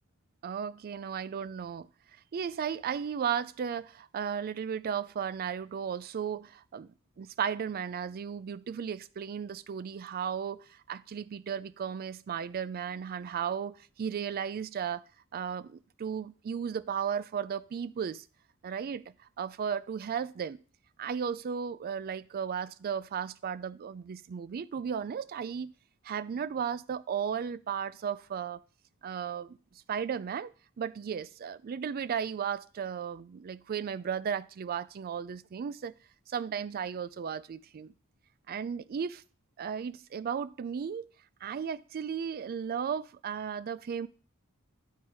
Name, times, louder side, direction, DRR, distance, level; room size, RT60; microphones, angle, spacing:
voice 1, 0.4-1.9 2.3-6.9 7.2-15.0 15.3-18.2 18.6-19.0 19.4-20.6 21.0-25.7 26.0-28.6 29.0-29.6 29.9-30.5 30.8-35.9 36.3-37.9 38.5-39.2 39.6-41.1 41.4-44.1, right 7 dB, 45° right, 0.3 m, -35 dB
9.0 x 4.5 x 4.7 m
head